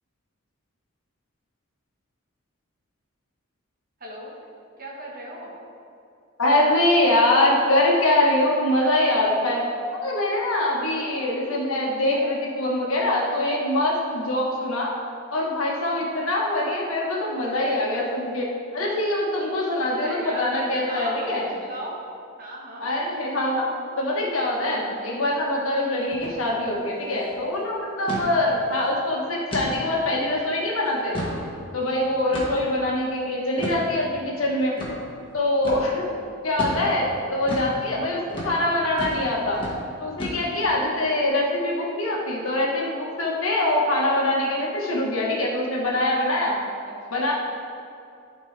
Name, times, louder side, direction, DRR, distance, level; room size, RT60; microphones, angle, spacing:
voice 1, 4.0-4.3 4.8-5.5 11.1-11.2 12.1-12.3 19.8-22.0 22.4-22.9 38.3-38.6 46.9-47.2, right 1 dB, 45° right, -3 dB, 1.4 m, -37 dB
voice 2, 6.4-9.6 10.0-14.9 15.3-18.5 18.7-21.5 22.8-23.7 24.0-31.2 31.7-34.7 35.3-36.0 36.4-39.6 40.0-46.6 47.1-47.3, left 1 dB, 85° left, -3 dB, 1.5 m, -23 dB
sound 1, 26.1-26.4 26.7-26.8 27.1-27.4 28.1-28.3 28.8-28.9 29.5-29.7 30.2-30.3 30.9-31.4 32.3-32.7 33.6-33.8 34.8-34.9 35.6-35.8 36.6-36.8 37.5-37.7 38.3-38.5 39.0-39.2 39.5-39.8 40.2-40.7, equal, 25° left, 1.5 m, -31 dB
12.0 x 4.4 x 3.4 m, 2.5 s
head